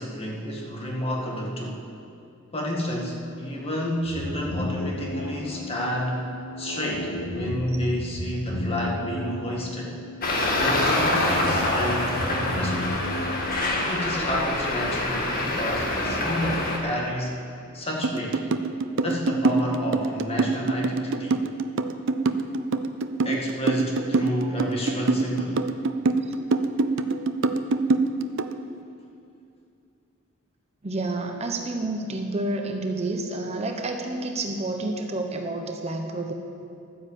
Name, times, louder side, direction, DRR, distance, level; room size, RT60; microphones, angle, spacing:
voice 1, 0.0-1.9 2.5-6.2 6.6-10.0 10.6-12.8 13.9-17.4 17.7-18.4 19.0-21.4 23.2-25.6, equal, 30° left, -2 dB, 1.9 m, -30 dB
sound 1, 4.0-14.0, left 1 dB, 70° left, 1.6 m, -33 dB
Traffic noise roadway noise, 10.2-16.8, left 2 dB, 45° left, 1.9 m, -26 dB
sound 2, 18.0-28.5, right 3 dB, 65° right, 0.6 m, -24 dB
voice 2, 30.8-36.3, right 2 dB, 30° right, 3 dB, 0.8 m, -29 dB
12.0 x 9.5 x 7.5 m, 2.5 s
head